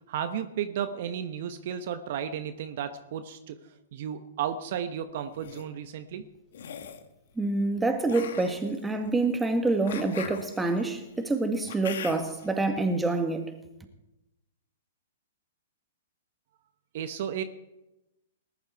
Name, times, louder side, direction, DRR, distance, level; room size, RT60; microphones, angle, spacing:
voice 1, 0.1-6.2 16.9-17.4, right 9 dB, 55° right, 1.1 m, -33 dB
sound 1, 5.2-5.6 6.5-7.1 8.0-12.5, left 7 dB, 65° left, 1.7 m, -42 dB
voice 2, 7.4-13.5, right 2 dB, 10° right, 1.9 m, -27 dB
19.5 x 11.0 x 4.7 m
figure-of-eight pair, 115°, 0 cm